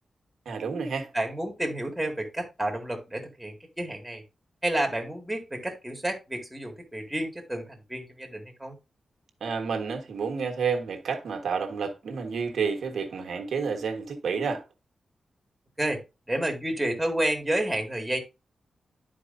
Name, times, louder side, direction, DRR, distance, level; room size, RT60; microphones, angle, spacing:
voice 1, 0.4-1.1 9.4-14.6, right 5 dB, 85° right, 1.4 m, -30 dB
voice 2, 1.1-4.2 4.6-8.8 15.8-16.0 16.3-18.2, right 1 dB, 5° right, 2.0 m, -30 dB
11.5 x 4.7 x 2.6 m
wide cardioid pair, 105°, 0 cm